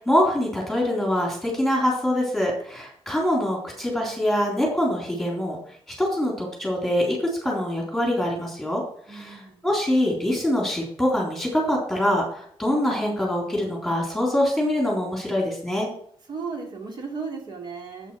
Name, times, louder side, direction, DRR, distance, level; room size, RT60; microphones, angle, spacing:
voice 1, 0.0-5.6 6.0-8.8 9.1-15.9, left 1 dB, ahead, -2 dB, 3.7 m, -24 dB
voice 2, 9.1-9.7 16.3-18.2, right 4 dB, 50° right, 1 dB, 2.8 m, -35 dB
8.3 x 8.2 x 6.2 m, 0.63 s
wide cardioid pair, 145°, 9 cm